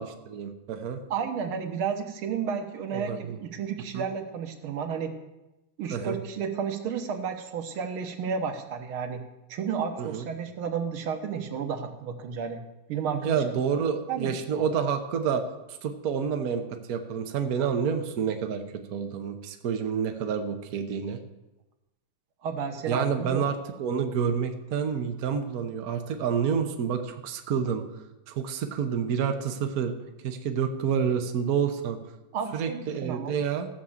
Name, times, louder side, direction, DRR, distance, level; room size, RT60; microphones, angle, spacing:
voice 1, 0.0-1.0 2.9-3.4 3.9-4.0 5.9-6.2 10.0-10.3 13.1-15.4 15.8-21.2 22.9-27.8 28.3-29.9 30.2-32.0 32.5-33.7, right 7 dB, 50° right, 6 dB, 1.3 m, -28 dB
voice 2, 1.1-5.1 5.8-9.2 9.5-12.6 12.9-13.4 14.1-14.6 22.4-23.5 32.3-33.4, right 6 dB, 80° right, 6 dB, 2.0 m, -32 dB
15.0 x 6.3 x 7.2 m, 0.99 s
omnidirectional pair, 2.3 m